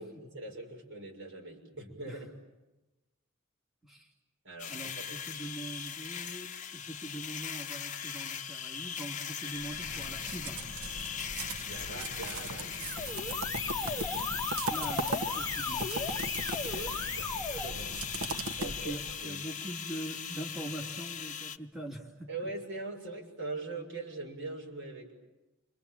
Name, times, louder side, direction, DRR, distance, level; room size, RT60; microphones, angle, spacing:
voice 1, 0.0-2.3 4.4-5.2 11.7-12.9 16.6-19.5 22.3-25.1, right 3 dB, 60° right, 1 dB, 6.6 m, -42 dB
sound 1, 4.6-21.6, left 8 dB, 35° left, 0.9 m, -40 dB
voice 2, 4.7-10.6 14.7-16.2 18.6-22.3, right 1 dB, ahead, -1 dB, 2.8 m, -43 dB
sound 2, 9.5-19.3, right 2 dB, 85° right, 1.3 m, -39 dB
sound 3, 12.5-17.7, left 4 dB, 15° left, 1.2 m, -36 dB
29.5 x 26.5 x 7.4 m, 1.1 s
head